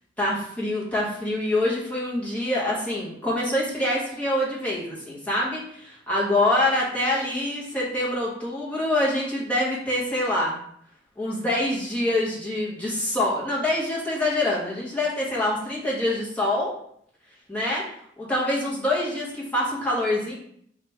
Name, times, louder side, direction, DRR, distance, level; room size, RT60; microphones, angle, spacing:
voice 1, 0.2-10.6 11.2-16.7 17.5-17.8 18.2-20.3, left 1 dB, 10° left, -6 dB, 1.0 m, -25 dB
4.1 x 2.4 x 3.3 m, 0.68 s
head